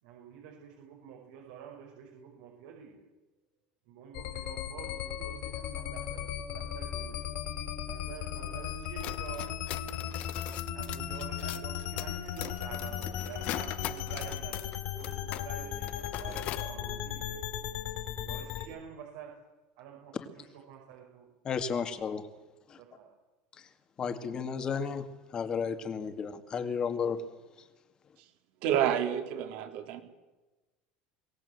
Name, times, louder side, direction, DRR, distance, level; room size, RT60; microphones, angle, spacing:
voice 1, 0.0-3.0 3.9-7.4 7.9-9.5 10.7-17.4 18.2-19.3 19.8-21.3 22.7-23.1, right 7 dB, 80° right, -1 dB, 5.4 m, -48 dB
sound 1, 4.1-18.7, left 10 dB, 65° left, 4.8 m, -37 dB
sound 2, 8.8-15.5 15.7-16.7, left 15 dB, 45° left, 0.7 m, -41 dB
voice 2, 21.4-22.2 22.7-22.8 24.0-27.2, left 6 dB, 25° left, 8 dB, 2.2 m, -33 dB
voice 3, 28.6-30.0, right 10 dB, 60° right, 6 dB, 3.5 m, -29 dB
23.5 x 18.5 x 8.1 m, 1.1 s
cardioid pair, 155°, 3 cm